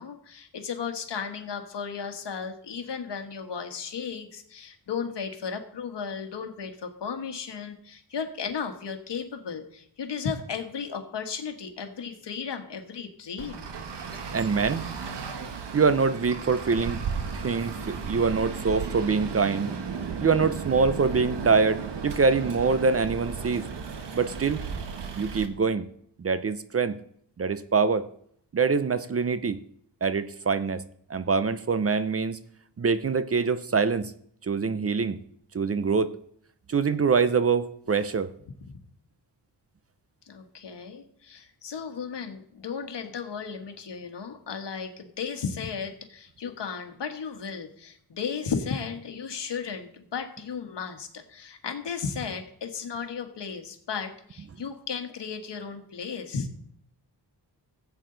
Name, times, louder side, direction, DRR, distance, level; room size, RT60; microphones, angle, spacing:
voice 1, 0.0-13.7 40.3-56.5, left 6 dB, 75° left, 5 dB, 1.5 m, -35 dB
Traffic noise roadway noise, 13.4-25.5, right 6 dB, 75° right, 1.3 m, -35 dB
voice 2, 14.3-14.9 15.7-17.0 17.3-19.7 20.2-23.7 24.1-24.7 25.2-25.9 26.2-27.0 27.4-28.1 28.5-29.6 30.0-30.8 31.1-32.4 32.8-34.1 34.4-35.2 35.5-36.2 36.7-38.3, right 5 dB, 35° right, 13 dB, 0.6 m, -24 dB
15.5 x 8.2 x 3.9 m, 0.67 s
wide cardioid pair, 105°, 42 cm